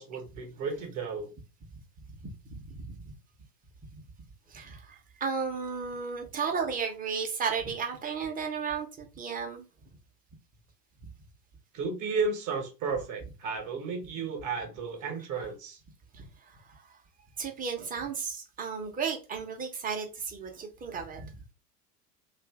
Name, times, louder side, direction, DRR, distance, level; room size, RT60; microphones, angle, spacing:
voice 1, 0.0-1.3 11.7-15.8, right 4 dB, 40° right, 1.1 m, -33 dB
voice 2, 2.2-3.0 4.5-9.7 17.4-21.3, right 5 dB, 15° right, 0.8 m, -34 dB
2.6 x 2.5 x 3.5 m
figure-of-eight pair, 85°, 49 cm